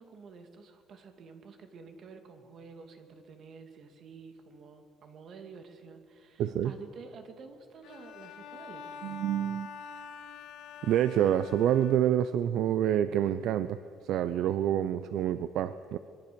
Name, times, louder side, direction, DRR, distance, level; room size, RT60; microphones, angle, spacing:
voice 1, 0.0-9.1, right 5 dB, 45° right, 6 dB, 2.5 m, -50 dB
voice 2, 6.4-6.7 9.0-9.7 10.8-16.0, right 10 dB, 65° right, 13 dB, 0.7 m, -27 dB
Bowed string instrument, 7.8-12.4, left 6 dB, 75° left, 1.9 m, -46 dB
25.0 x 22.5 x 7.0 m, 2.3 s
cardioid pair, 140°, 0 cm